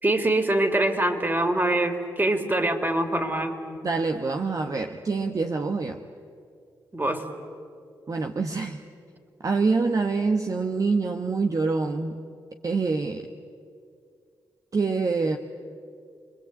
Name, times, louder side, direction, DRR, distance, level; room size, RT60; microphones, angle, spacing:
voice 1, 0.0-3.5 6.9-7.2, right 1 dB, 25° right, 6 dB, 3.5 m, -24 dB
voice 2, 3.8-6.0 8.1-8.8 9.4-12.2 12.6-13.3 14.7-15.4, right 4 dB, 45° right, 5 dB, 1.3 m, -25 dB
28.5 x 21.0 x 8.8 m, 2.3 s
supercardioid pair, 45°, 8 cm